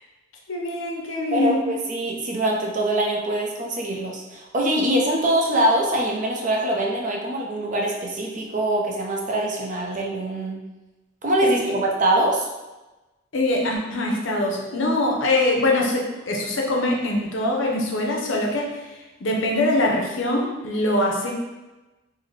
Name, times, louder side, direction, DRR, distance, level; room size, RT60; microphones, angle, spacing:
voice 1, 0.5-1.6 11.4-11.7 13.3-21.3, left 1 dB, 70° left, 0 dB, 0.6 m, -23 dB
voice 2, 1.3-10.6 11.2-12.5, right 1 dB, 40° right, -1 dB, 0.5 m, -23 dB
3.8 x 2.1 x 3.2 m, 1.1 s
head